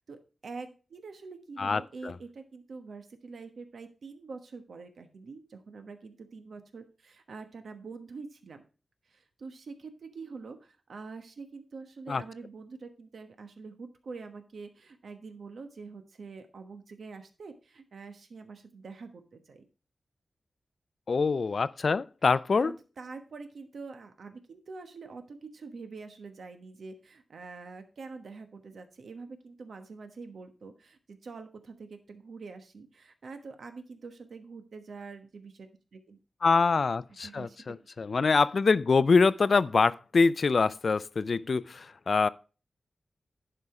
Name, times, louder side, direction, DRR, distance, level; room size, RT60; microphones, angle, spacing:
voice 1, 0.0-8.7 9.1-19.6 22.6-36.2 37.2-37.9, right 4 dB, 85° right, 1.2 m, -45 dB
voice 2, 1.6-2.1 12.1-12.2 21.1-22.7 36.4-42.3, left 4 dB, 60° left, 0.4 m, -25 dB
11.0 x 5.0 x 4.7 m
wide cardioid pair, 100°, 0 cm